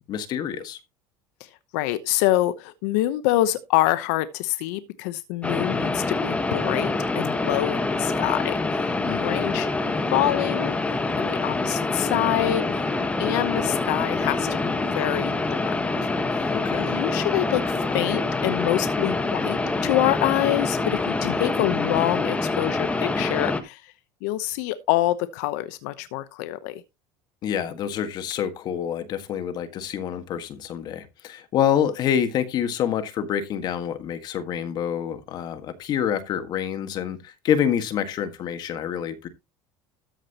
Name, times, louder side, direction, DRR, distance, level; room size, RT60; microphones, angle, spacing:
voice 1, 0.1-0.8 9.0-9.6 16.5-17.0 27.4-39.3, left 9 dB, 50° left, 1.7 m, -27 dB
voice 2, 1.4-10.8 11.2-12.9 13.2-15.6 16.3-23.9 24.2-26.8, left 15 dB, 80° left, 0.9 m, -26 dB
sound 1, 5.4-23.6, left 3 dB, 15° left, 1.4 m, -26 dB
13.5 x 7.5 x 3.0 m
supercardioid pair, 110°, 9 cm